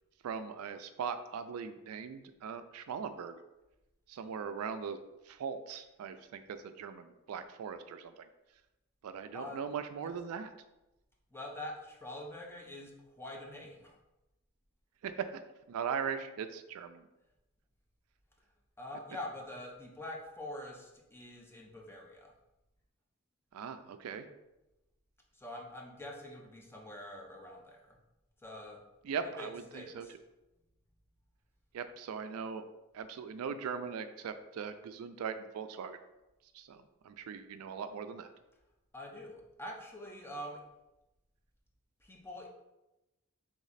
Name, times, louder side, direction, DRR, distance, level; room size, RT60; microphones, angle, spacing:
voice 1, 0.2-3.4 4.1-5.0 5.3-8.3 9.0-10.5 15.0-15.4 15.7-17.1 23.5-24.3 29.0-30.1 31.7-32.7 32.9-36.0 36.5-38.3, right 6 dB, 75° right, 10 dB, 0.3 m, -40 dB
voice 2, 11.3-14.0 18.8-22.3 25.3-28.0 28.4-28.8 29.4-30.1 38.9-40.6 42.0-42.5, left 1 dB, 10° left, -1 dB, 0.6 m, -45 dB
3.5 x 3.1 x 4.0 m, 0.97 s
head